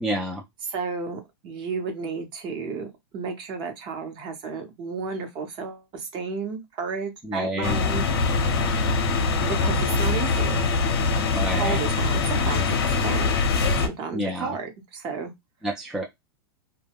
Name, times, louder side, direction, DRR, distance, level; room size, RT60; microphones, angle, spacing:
voice 1, 0.0-0.4 7.2-7.8 11.3-11.8 14.1-14.6 15.6-16.0, right 1 dB, 5° right, 0.5 m, -28 dB
voice 2, 0.6-2.9 3.1-8.0 8.7-8.8 9.4-10.6 11.6-13.4 13.7-15.3, right 5 dB, 40° right, 0.9 m, -32 dB
sound 1, 7.6-13.9, left 4 dB, 70° left, 0.7 m, -23 dB
2.2 x 2.1 x 3.4 m
hypercardioid pair, 115°, 13 cm